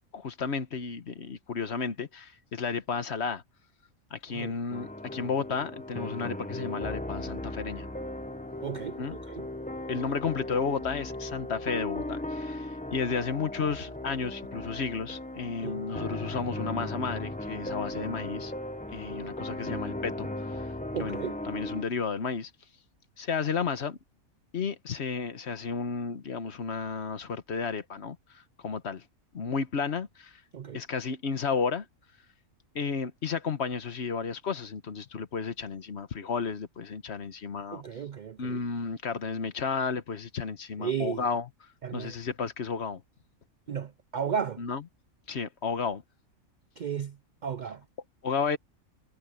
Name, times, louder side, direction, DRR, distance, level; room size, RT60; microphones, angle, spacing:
voice 1, 0.1-3.4 4.1-7.9 9.0-9.2 9.9-18.5 18.9-21.2 21.4-22.5 23.2-24.0 24.5-29.0 29.3-30.4 30.7-31.8 32.7-37.8 38.4-41.5 41.9-43.0 44.6-44.8 45.3-46.0 48.2-48.6, left 5 dB, 55° left, 1.3 m, -32 dB
sound 1, 4.7-21.8, left 1 dB, 10° left, 0.7 m, -37 dB
voice 2, 8.6-9.0 9.3-9.5 15.6-15.8 20.9-21.4 30.5-30.8 37.7-38.6 40.8-41.2 41.8-42.1 43.7-44.6 46.8-47.1 47.4-47.8, right 7 dB, 70° right, 0.4 m, -34 dB
omnidirectional pair, 1.4 m